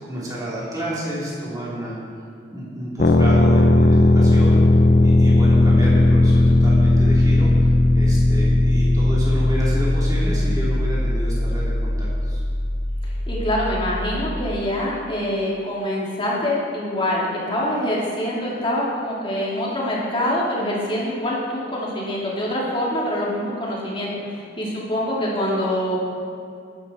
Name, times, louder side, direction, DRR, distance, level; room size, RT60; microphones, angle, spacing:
voice 1, 0.0-2.0 2.5-12.4, equal, 20° right, -7 dB, 3.4 m, -30 dB
sound 1, 3.0-14.6, left 1 dB, 50° left, 0.7 m, -17 dB
voice 2, 13.3-26.0, left 1 dB, 30° left, -5 dB, 2.6 m, -25 dB
13.0 x 10.5 x 4.3 m, 2.3 s
head